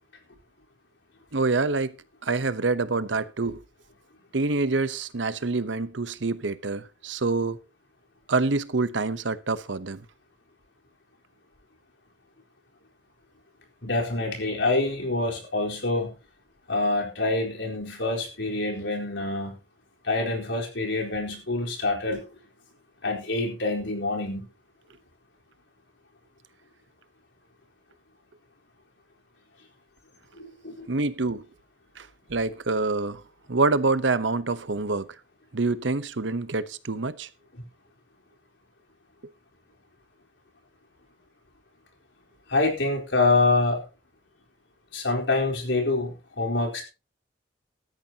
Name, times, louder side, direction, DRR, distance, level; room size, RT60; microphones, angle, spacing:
voice 1, 1.3-2.0 2.2-3.6 4.3-7.6 8.3-10.0 30.9-31.4 32.0-33.2 33.5-35.1 35.5-37.3, right 3 dB, 85° right, 0.9 m, -26 dB
voice 2, 13.8-16.2 16.7-19.5 20.0-22.3 23.0-24.5 30.3-30.9 37.6-37.7 42.5-43.8 44.9-46.8, left 2 dB, 85° left, 4.2 m, -26 dB
16.5 x 13.0 x 2.9 m
head